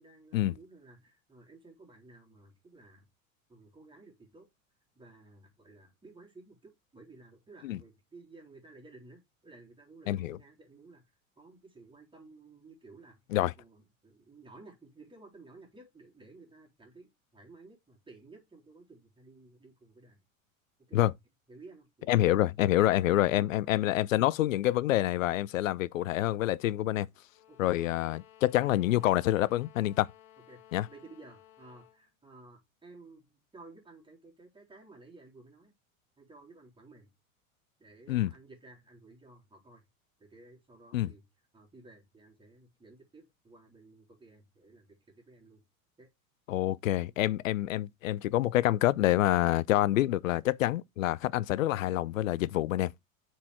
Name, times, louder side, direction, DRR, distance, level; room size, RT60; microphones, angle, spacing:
voice 1, 0.0-3.1 3.5-4.5 4.9-11.0 11.4-13.3 13.6-20.2 20.8-21.0 21.5-22.1 22.8-23.7 27.5-27.8 30.5-35.7 36.2-37.1 37.8-39.8 40.2-41.3 41.5-45.6 46.0-46.1, right 3 dB, 10° right, 3.6 m, -55 dB
voice 2, 10.1-10.4 13.3-13.5 20.9-21.1 22.1-27.1 27.6-30.1 30.7-30.9 38.1-38.3 40.9-41.1 46.5-52.9, left 14 dB, 70° left, 0.5 m, -27 dB
sound 1, 27.3-32.0, left 12 dB, 55° left, 1.4 m, -58 dB
6.7 x 4.6 x 4.8 m
figure-of-eight pair, 80°, 41 cm